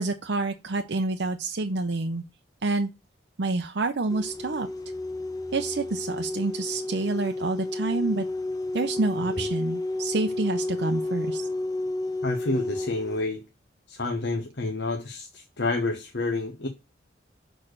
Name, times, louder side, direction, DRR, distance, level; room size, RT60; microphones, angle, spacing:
voice 1, 0.0-2.2 2.6-2.9 3.4-4.7 5.5-8.3 8.7-11.5, right 3 dB, 65° right, 0.6 m, -28 dB
sound 1, 4.1-13.2, left 2 dB, 20° left, 0.7 m, -31 dB
voice 2, 12.2-13.4 13.9-16.7, left 2 dB, 65° left, 1.1 m, -29 dB
6.3 x 4.5 x 6.4 m
head